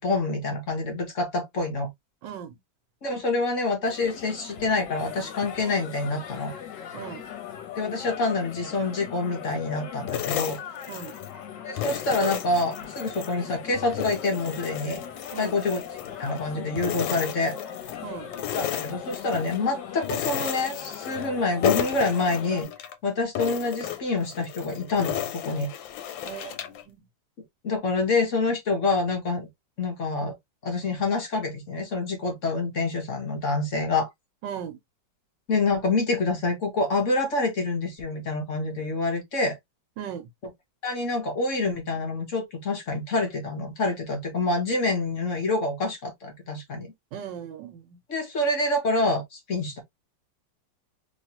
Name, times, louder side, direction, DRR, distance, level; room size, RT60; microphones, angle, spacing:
voice 1, 0.0-1.9 3.0-6.5 7.8-10.6 11.6-15.0 15.4-15.8 16.2-17.6 18.5-22.7 23.0-25.7 27.6-29.5 29.8-30.4 30.6-34.1 35.5-39.6 40.8-46.9 48.1-49.8, left 3 dB, 50° left, 1.0 m, -27 dB
voice 2, 2.2-2.6 6.9-7.2 10.9-11.1 15.3-15.6 18.0-18.3 26.3-27.1 34.4-34.8 40.0-40.3 47.1-48.0, right 8 dB, 80° right, 1.3 m, -38 dB
sound 1, 3.8-22.6, left 9 dB, 70° left, 1.5 m, -39 dB
sound 2, 10.1-11.4 11.8-13.3 13.7-16.4 16.8-18.0 18.3-19.6 20.0-21.4 21.6-22.9 23.3-26.8, left 10 dB, 85° left, 1.3 m, -33 dB
3.2 x 3.0 x 2.7 m
omnidirectional pair, 2.0 m